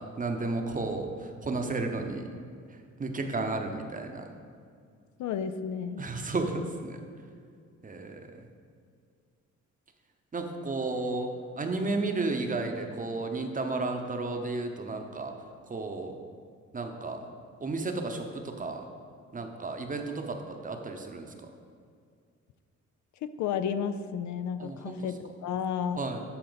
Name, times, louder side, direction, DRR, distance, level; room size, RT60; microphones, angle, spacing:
voice 1, 0.0-2.3 3.0-4.2 6.0-7.0 7.8-8.5 10.3-11.3 11.6-15.3 15.7-16.2 16.7-17.2 17.6-18.9 19.3-21.3 24.6-25.0 26.0-26.2, right 3 dB, 25° right, 4 dB, 0.8 m, -33 dB
voice 2, 5.2-6.1 23.2-26.0, left 7 dB, 70° left, 11 dB, 0.5 m, -32 dB
11.5 x 4.3 x 4.0 m, 2.2 s
cardioid pair, 90°, 30 cm